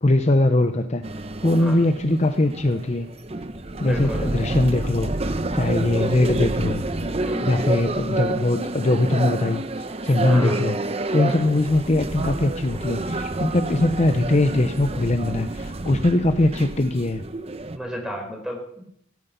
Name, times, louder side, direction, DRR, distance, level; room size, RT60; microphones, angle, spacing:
voice 1, 0.0-1.0 1.4-3.1 3.8-6.8 7.1-10.8 11.1-17.2, left 2 dB, 35° left, 8 dB, 0.7 m, -21 dB
sound 1, 1.0-17.8, right 2 dB, 30° right, 0.7 m, -29 dB
voice 2, 3.8-4.4 7.2-7.8 10.2-10.7 11.2-11.5 17.7-18.8, equal, 5° right, 1 dB, 4.0 m, -33 dB
16.5 x 9.5 x 6.8 m, 0.74 s
head